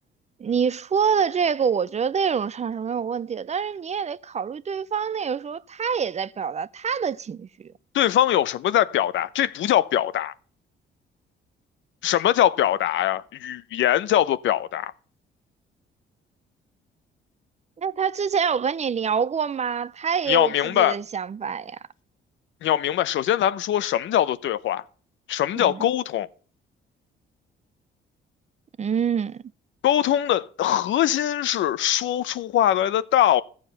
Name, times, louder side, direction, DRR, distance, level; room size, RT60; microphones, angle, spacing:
voice 1, 0.4-7.7 17.8-21.8 25.6-25.9 28.8-29.4, right 7 dB, 35° right, 0.5 m, -26 dB
voice 2, 7.9-10.3 12.0-14.9 20.3-21.0 22.6-24.8 25.3-26.3 29.8-33.4, left 11 dB, 75° left, 0.7 m, -22 dB
14.5 x 7.3 x 5.5 m
cardioid pair, 90°, 20 cm